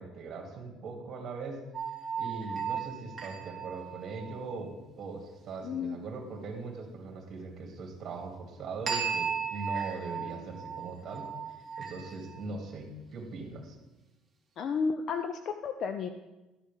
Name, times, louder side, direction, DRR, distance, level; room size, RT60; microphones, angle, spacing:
voice 1, 0.0-1.6 2.2-11.3 11.8-13.7, right 3 dB, 40° right, 1 dB, 2.6 m, -40 dB
sound 1, 1.7-4.6 8.9-12.4, right 6 dB, 15° right, 1.6 m, -36 dB
voice 2, 5.6-6.0 14.6-16.1, left 5 dB, 40° left, 8 dB, 0.5 m, -32 dB
12.5 x 10.0 x 3.5 m, 1.0 s
cardioid pair, 160°, 0 cm